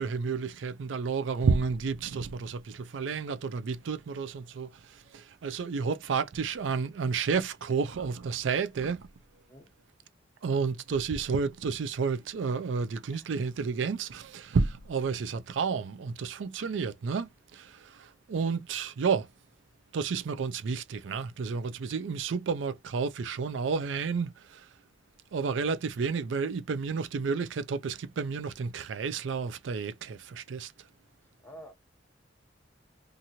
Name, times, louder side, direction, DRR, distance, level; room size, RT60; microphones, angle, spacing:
voice 1, 0.0-9.1 10.4-19.3 19.9-24.7 25.3-30.7, right 5 dB, 85° right, 0.4 m, -31 dB
voice 2, 31.4-31.7, equal, 10° left, 0.7 m, -48 dB
2.8 x 2.5 x 2.7 m
head